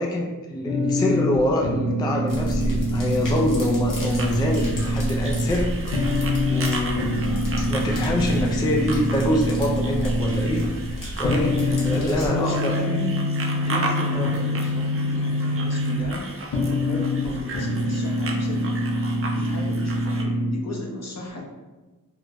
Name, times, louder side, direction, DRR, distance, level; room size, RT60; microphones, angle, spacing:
voice 1, 0.0-12.7 14.1-14.3 17.3-17.4, left 1 dB, 15° left, -1 dB, 0.3 m, -26 dB
sound 1, 0.7-20.5, left 1 dB, 85° left, 0.7 m, -25 dB
sound 2, 2.3-12.3, equal, 70° left, 1.2 m, -31 dB
sound 3, 4.0-20.2, right 3 dB, 40° right, 0.5 m, -36 dB
voice 2, 11.9-16.3 16.7-18.8 19.3-21.4, left 2 dB, 50° left, -2 dB, 0.8 m, -34 dB
4.5 x 2.1 x 2.5 m, 1.2 s
wide cardioid pair, 80°, 34 cm